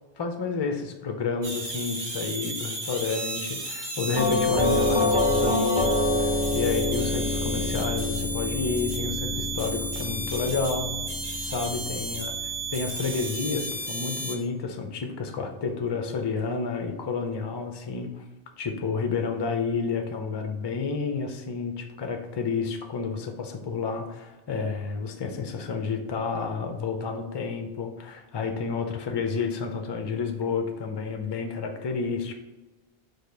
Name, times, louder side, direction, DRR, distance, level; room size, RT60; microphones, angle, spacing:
voice 1, 0.2-11.0 11.4-12.3 12.7-18.2 18.6-32.3, left 5 dB, 40° left, 4 dB, 0.4 m, -30 dB
sound 1, 1.4-14.4, right 2 dB, 45° right, 0.9 m, -34 dB
Doorbell, 4.2-13.0, left 2 dB, 5° right, 1.0 m, -27 dB
5.0 x 2.2 x 4.3 m, 1.1 s
omnidirectional pair, 1.0 m